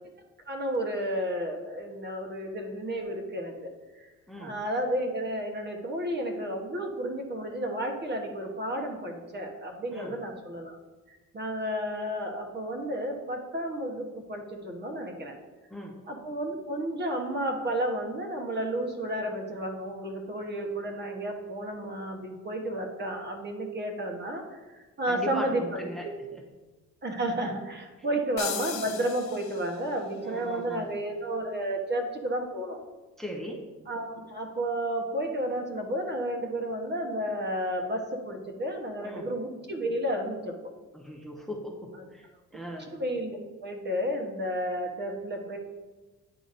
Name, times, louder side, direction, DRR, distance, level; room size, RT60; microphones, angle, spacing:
voice 1, 0.5-4.1 4.4-10.8 11.1-15.4 16.1-26.1 27.0-32.8 33.9-40.7 43.0-45.6, right 1 dB, 35° right, 2 dB, 1.1 m, -32 dB
voice 2, 25.1-26.4 28.0-28.2 30.2-30.9 33.2-33.7 39.0-39.3 40.9-42.9, equal, ahead, 0 dB, 0.9 m, -39 dB
sound 1, 28.4-30.0, left 8 dB, 65° left, 0.7 m, -37 dB
9.7 x 3.9 x 2.6 m, 1.2 s
cardioid pair, 90°, 30 cm